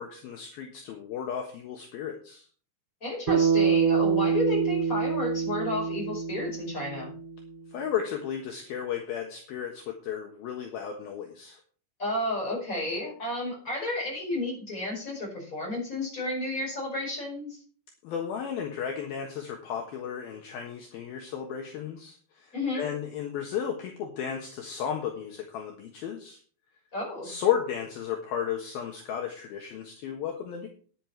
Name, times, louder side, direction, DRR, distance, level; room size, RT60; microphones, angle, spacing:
voice 1, 0.0-2.5 7.7-11.6 18.0-26.4 27.2-30.7, left 8 dB, 65° left, 2 dB, 2.9 m, -34 dB
voice 2, 3.0-7.1 12.0-17.6 22.5-22.9 26.9-27.3, left 1 dB, 20° left, -1 dB, 5.3 m, -32 dB
Bass guitar, 3.3-7.7, right 6 dB, 65° right, 3.4 m, -26 dB
10.5 x 10.0 x 4.6 m, 0.43 s
omnidirectional pair, 5.1 m